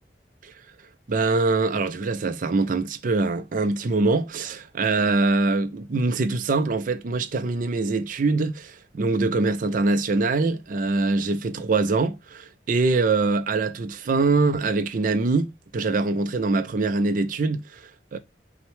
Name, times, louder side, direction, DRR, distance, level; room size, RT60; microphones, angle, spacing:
voice 1, 1.1-18.2, right 3 dB, 50° right, 0.4 m, -23 dB
5.7 x 2.1 x 3.1 m
head